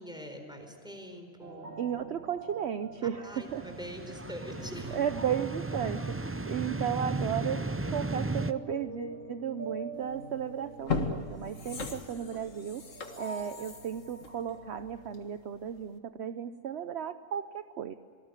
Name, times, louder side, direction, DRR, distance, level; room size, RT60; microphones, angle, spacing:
voice 1, 0.0-1.7 3.0-5.0, equal, 5° right, 5 dB, 4.3 m, -44 dB
sound 1, 1.4-15.0, right 2 dB, 85° right, 3.1 m, -46 dB
voice 2, 1.8-3.6 4.9-12.8 13.2-17.9, right 9 dB, 60° right, 10 dB, 1.0 m, -34 dB
sound 2, 3.4-8.5, right 2 dB, 20° right, 0.4 m, -35 dB
sound 3, 10.1-10.2 10.7-15.4 15.8-15.9, left 4 dB, 80° left, 2.1 m, -37 dB
27.0 x 19.0 x 9.0 m, 2.4 s
omnidirectional pair, 1.3 m